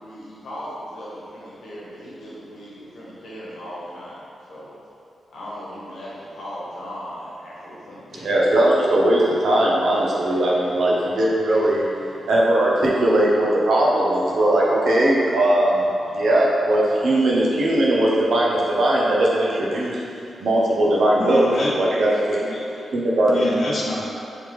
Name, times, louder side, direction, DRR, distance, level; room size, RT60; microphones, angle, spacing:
voice 1, 0.0-4.2 4.5-4.7 5.3-8.4, equal, 80° left, -8 dB, 1.1 m, -37 dB
voice 2, 8.2-11.9 12.3-20.0 20.4-21.5 21.8-22.5 22.9-23.3, right 1 dB, 65° right, -4 dB, 0.6 m, -19 dB
voice 3, 21.2-21.8 22.4-22.7 23.3-24.1, left 2 dB, 40° left, -3 dB, 0.5 m, -27 dB
3.4 x 3.2 x 3.1 m, 2.6 s
wide cardioid pair, 175°, 0 cm